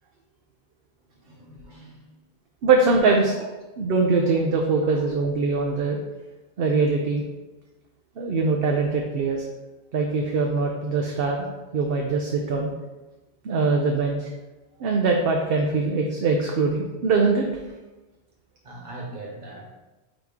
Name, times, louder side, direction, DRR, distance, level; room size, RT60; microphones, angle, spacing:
voice 1, 1.2-2.1 3.2-3.5 4.8-5.1 18.6-19.7, right 2 dB, 50° right, -2 dB, 1.5 m, -41 dB
voice 2, 2.6-3.2 3.8-6.0 6.6-7.2 8.2-9.4 9.9-11.5 11.7-12.7 13.4-14.3 14.8-17.5, right 4 dB, 65° right, 1 dB, 0.8 m, -22 dB
8.9 x 3.1 x 3.5 m, 1.1 s
omnidirectional pair, 1.1 m